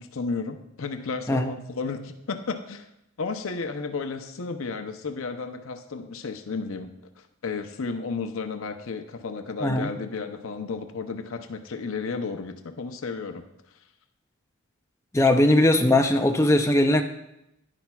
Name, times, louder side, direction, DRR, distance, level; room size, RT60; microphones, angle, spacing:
voice 1, 0.0-2.9 3.2-13.4, left 4 dB, 70° left, 7 dB, 0.6 m, -33 dB
voice 2, 15.1-17.0, left 1 dB, 15° left, 5 dB, 0.5 m, -20 dB
10.5 x 9.9 x 2.3 m, 0.84 s
head